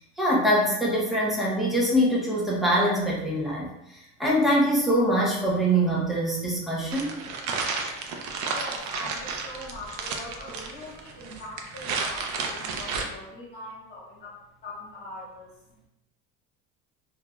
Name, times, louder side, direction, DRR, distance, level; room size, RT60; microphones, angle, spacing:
voice 1, 0.2-3.7 4.2-7.1, equal, ahead, -5 dB, 0.5 m, -23 dB
sound 1, 6.9-13.0, right 4 dB, 65° right, 0.5 m, -32 dB
voice 2, 8.5-15.5, left 1 dB, 35° left, -6 dB, 1.1 m, -42 dB
2.9 x 2.4 x 2.2 m, 0.86 s
cardioid pair, 155°, 31 cm